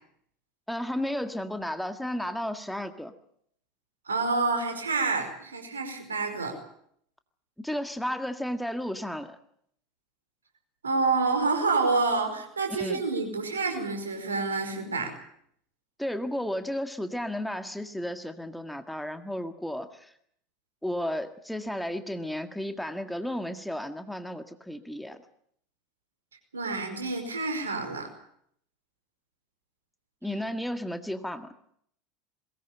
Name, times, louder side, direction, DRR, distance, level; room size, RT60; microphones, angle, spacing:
voice 1, 0.7-3.1 7.6-9.4 12.7-13.0 16.0-20.1 20.8-25.2 30.2-31.5, left 1 dB, ahead, 8 dB, 1.8 m, -33 dB
voice 2, 4.1-6.6 10.8-15.1 26.5-28.1, right 3 dB, 80° right, 5 dB, 5.0 m, -28 dB
22.0 x 18.5 x 9.0 m, 0.68 s
figure-of-eight pair, 75°, 0 cm